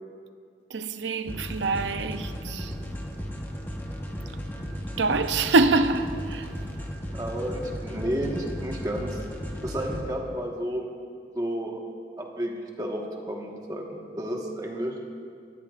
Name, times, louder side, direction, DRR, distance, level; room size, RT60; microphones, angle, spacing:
voice 1, 0.7-2.8 5.0-6.5, right 3 dB, 90° right, 0.6 m, -25 dB
sound 1, 1.3-10.0, equal, 10° left, 1.1 m, -35 dB
voice 2, 7.1-9.2 9.6-10.8 11.3-11.8 12.2-14.9, equal, 20° right, 1.4 m, -31 dB
22.5 x 14.0 x 2.5 m
head